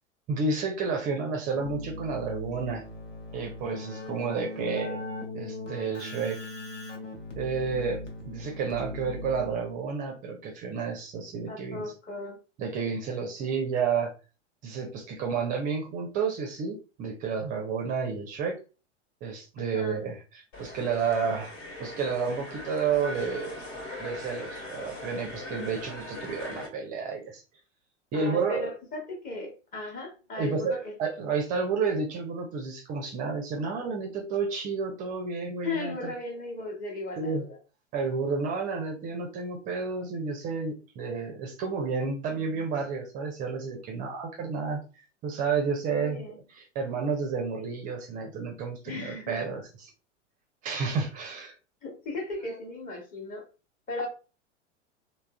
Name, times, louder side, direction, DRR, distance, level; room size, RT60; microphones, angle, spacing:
voice 1, 0.3-2.8 3.3-5.0 5.3-6.4 7.4-11.9 12.6-14.1 14.6-18.6 19.2-21.5 21.8-23.6 24.0-27.4 28.1-28.7 30.4-36.1 37.2-37.4 37.9-44.8 45.2-46.2 46.5-49.6 50.6-51.5, right 5 dB, 25° right, 3 dB, 0.4 m, -31 dB
Keyboard (musical), 1.5-9.9, left 2 dB, 75° left, 0.9 m, -39 dB
voice 2, 11.5-12.4 19.6-20.0 28.1-30.9 35.6-37.6 46.0-46.4 48.9-49.5 51.8-53.5 53.9-54.1, left 2 dB, 25° left, 1 dB, 0.9 m, -36 dB
sound 1, 20.5-26.7, left 1 dB, 60° left, 1.3 m, -40 dB
3.4 x 2.1 x 2.2 m, 0.34 s
figure-of-eight pair, 95°, 37 cm